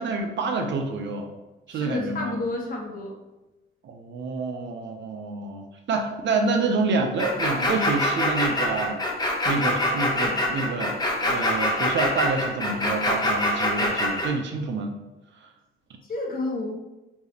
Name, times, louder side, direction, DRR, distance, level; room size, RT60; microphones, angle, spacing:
voice 1, 0.0-1.3 1.7-2.4 3.8-9.0 9.4-15.0 15.4-15.5, right 4 dB, 60° right, 4 dB, 0.7 m, -28 dB
voice 2, 1.7-3.1 16.1-16.7, left 2 dB, 45° left, -1 dB, 1.1 m, -30 dB
sound 1, 7.2-14.3, left 1 dB, 20° left, 1.0 m, -24 dB
4.4 x 3.3 x 2.9 m, 1.0 s
cardioid pair, 100°, 21 cm